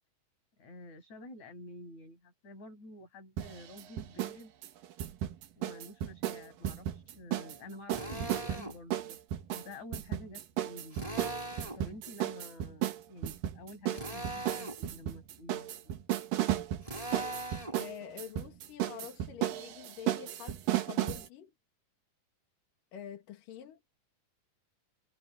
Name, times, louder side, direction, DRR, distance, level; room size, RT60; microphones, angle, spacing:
voice 1, 0.6-4.5 5.6-9.2 9.5-11.0 11.7-15.9, left 1 dB, 55° left, 9.5 m, -49 dB
sound 1, 3.4-4.4 4.6-7.6 7.9-21.3, right 12 dB, 80° right, 3.1 m, -34 dB
Drill, 7.9-8.8 10.9-11.8 13.9-14.8 16.8-17.8, right 1 dB, 10° right, 4.6 m, -40 dB
voice 2, 17.8-21.5 22.9-23.8, left 9 dB, 75° left, 3.6 m, -46 dB
omnidirectional pair, 3.9 m